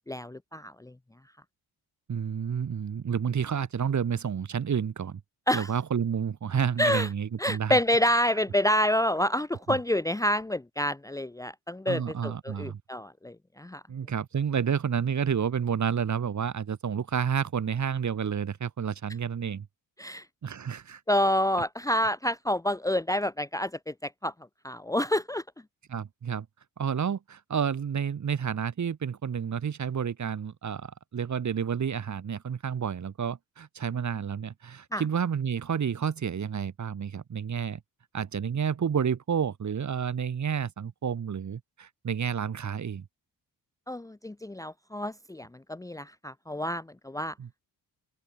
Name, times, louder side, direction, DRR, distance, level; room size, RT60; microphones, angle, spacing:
voice 1, 0.1-0.9 5.5-5.7 6.8-7.1 7.4-13.8 20.0-20.3 21.1-24.3 24.6-25.4 34.9-35.0 43.9-47.3, left 1 dB, 10° left, 1.0 m, -28 dB
voice 2, 2.1-5.2 5.5-7.8 9.7-9.8 11.9-12.8 13.9-19.7 20.4-21.0 25.9-26.5 26.8-37.8 38.1-43.0 47.4-47.6, right 7 dB, 50° right, 4.3 m, -30 dB
open air
cardioid pair, 130°, 38 cm